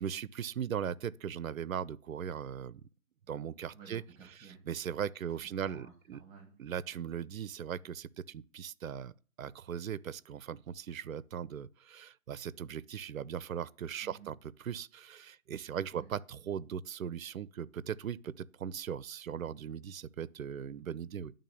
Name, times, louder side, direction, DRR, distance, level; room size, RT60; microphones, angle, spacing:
voice 1, 0.0-2.8 3.3-4.0 4.7-6.2 6.6-9.1 9.4-14.4 14.6-21.3, right 8 dB, 70° right, 0.6 m, -39 dB
voice 2, 3.7-4.6 5.5-6.7 14.0-14.3 15.9-16.1, right 6 dB, 10° right, 1.7 m, -54 dB
10.0 x 3.7 x 6.8 m
figure-of-eight pair, 135°, 42 cm